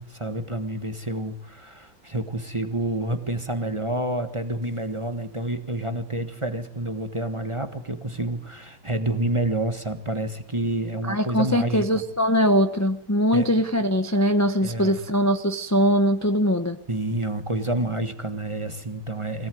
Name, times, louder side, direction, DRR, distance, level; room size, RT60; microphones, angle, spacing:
voice 1, 0.0-12.0 13.3-13.5 14.6-15.0 16.9-19.5, right 1 dB, 15° right, 8 dB, 1.3 m, -28 dB
voice 2, 11.1-16.8, equal, 15° left, 7 dB, 0.6 m, -21 dB
24.0 x 18.0 x 9.4 m, 0.77 s
omnidirectional pair, 2.3 m